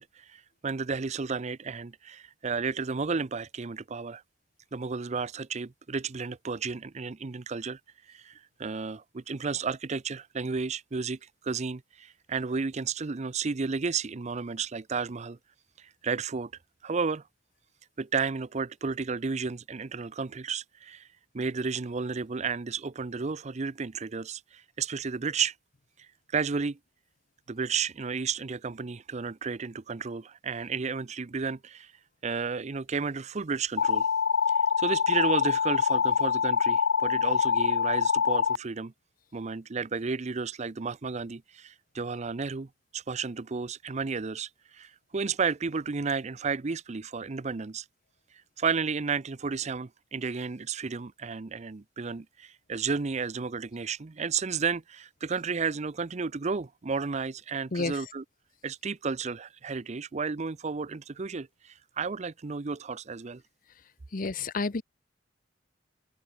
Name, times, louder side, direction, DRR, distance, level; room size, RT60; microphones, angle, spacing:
voice 1, 0.0-4.2 4.7-7.8 8.1-15.4 15.8-16.5 16.8-17.2 18.0-21.1 21.3-25.5 26.0-26.8 27.5-31.9 32.2-34.1 34.8-38.9 39.3-47.8 48.6-58.2 58.6-63.4, right 5 dB, 40° right, 0.6 m, -32 dB
sound 1, 33.8-38.6, left 6 dB, 80° left, 0.5 m, -25 dB
voice 2, 64.1-64.8, left 3 dB, 45° left, 0.8 m, -30 dB
head